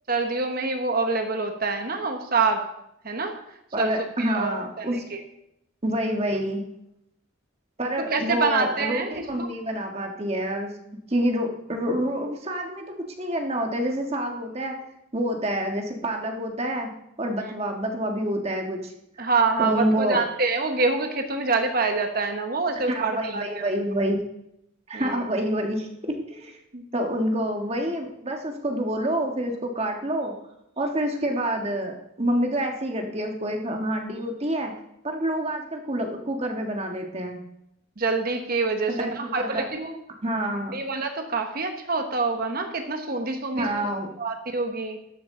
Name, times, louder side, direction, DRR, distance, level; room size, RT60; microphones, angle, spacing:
voice 1, 0.1-2.6 3.0-3.3 3.8-5.2 8.1-9.5 19.2-23.7 24.9-25.2 26.7-26.8 38.0-40.0 40.7-43.9 44.2-45.0, right 3 dB, 45° right, 5 dB, 1.1 m, -26 dB
voice 2, 3.7-5.0 5.8-6.6 7.8-10.7 11.1-14.7 15.1-16.9 17.2-18.9 19.6-20.2 22.9-24.2 24.9-25.9 26.3-26.6 26.9-30.4 30.8-34.7 35.0-37.4 38.9-39.6 40.2-40.8 43.5-44.1, right 1 dB, 30° right, 3 dB, 1.5 m, -27 dB
13.5 x 11.5 x 3.8 m, 0.81 s
head